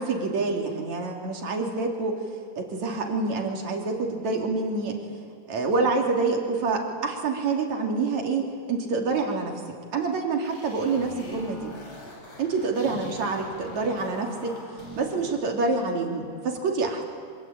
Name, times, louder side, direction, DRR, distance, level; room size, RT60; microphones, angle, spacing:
voice 1, 0.0-2.1 2.6-5.0 5.5-8.4 8.7-9.5 9.9-11.7 12.4-14.5 15.0-17.0, right 3 dB, 60° right, 1 dB, 4.0 m, -27 dB
sound 1, 10.1-15.3, left 1 dB, 55° left, 7.5 m, -43 dB
25.5 x 24.0 x 8.7 m, 2.2 s
omnidirectional pair, 3.7 m